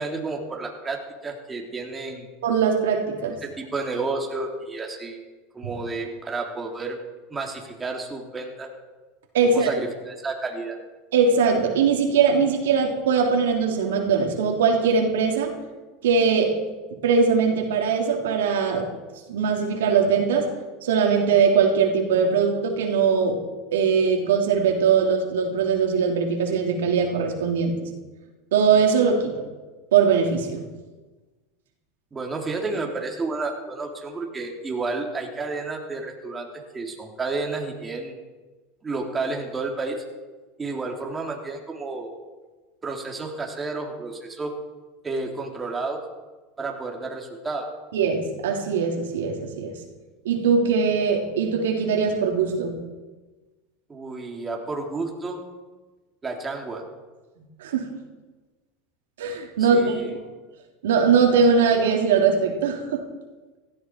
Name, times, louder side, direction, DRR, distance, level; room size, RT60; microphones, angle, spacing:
voice 1, 0.0-2.3 3.4-5.2 5.5-7.0 7.3-8.7 9.4-10.8 32.1-36.5 36.7-38.1 38.8-40.0 40.6-42.1 42.8-44.5 45.0-46.0 46.6-47.7 53.9-55.4 56.2-56.9 59.6-60.2, right 3 dB, 20° right, 1 dB, 3.3 m, -31 dB
voice 2, 2.4-3.3 9.3-9.7 11.1-15.5 16.0-16.5 17.0-18.9 19.3-20.5 20.8-23.4 23.7-27.8 28.5-29.3 29.9-30.6 47.9-49.7 50.2-52.8 57.6-57.9 59.2-60.2 60.8-63.0, right 5 dB, 90° right, 1 dB, 3.3 m, -21 dB
17.0 x 15.5 x 4.7 m, 1.2 s
supercardioid pair, 110°, 0 cm